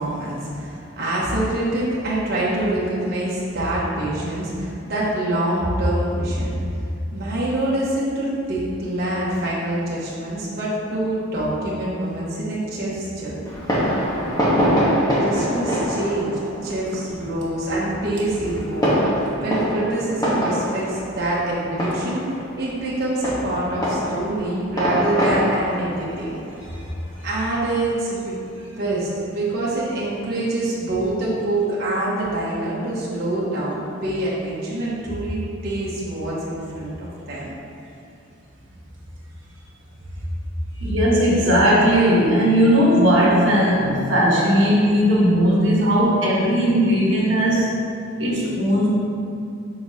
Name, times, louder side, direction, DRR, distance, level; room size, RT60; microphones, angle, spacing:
voice 1, 0.0-6.6 7.1-13.5 14.4-22.2 22.6-26.4 27.2-28.3 28.6-37.5, right 1 dB, 55° right, -7 dB, 1.2 m, -25 dB
Fireworks, 13.4-27.6, equal, 20° left, 1.1 m, -25 dB
voice 2, 40.8-47.7 48.2-48.9, equal, 70° right, -4 dB, 1.4 m, -17 dB
6.9 x 4.9 x 2.8 m, 2.5 s
head